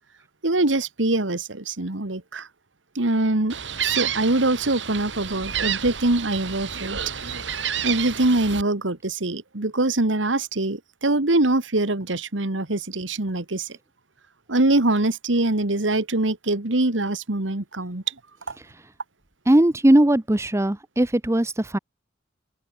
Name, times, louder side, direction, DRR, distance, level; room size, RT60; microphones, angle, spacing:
voice 1, 0.4-2.5 3.0-3.5 3.8-7.0 7.8-13.7 14.5-18.0, right 2 dB, 90° right, 1.9 m, -23 dB
Gull seagull, 3.5-8.6, right 8 dB, 70° right, 6.3 m, -29 dB
voice 2, 19.5-21.8, right 1 dB, 15° right, 0.8 m, -19 dB
open air
head